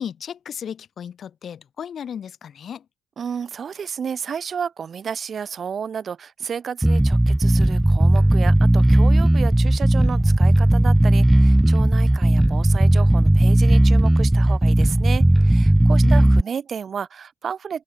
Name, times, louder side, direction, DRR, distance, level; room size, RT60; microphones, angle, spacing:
voice 1, 0.0-2.9 16.0-16.3, left 8 dB, 55° left, 4.5 m, -34 dB
voice 2, 3.2-17.8, right 7 dB, 50° right, 1.8 m, -32 dB
Bass guitar, 6.8-16.4, right 1 dB, 10° right, 1.2 m, -16 dB
cardioid pair, 90°, 0 cm